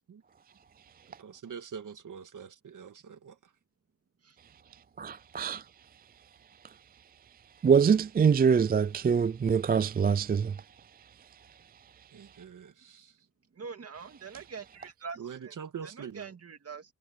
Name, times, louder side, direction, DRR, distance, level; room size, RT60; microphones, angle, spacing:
voice 1, 1.2-3.4 12.1-13.1 15.2-16.3, right 7 dB, 70° right, 1.9 m, -44 dB
voice 2, 5.0-5.6 7.6-10.5, right 6 dB, 30° right, 0.4 m, -24 dB
voice 3, 13.6-15.2 15.4-15.5 16.0-16.8, right 5 dB, 45° right, 2.4 m, -43 dB
wide cardioid pair, 115°, 32 cm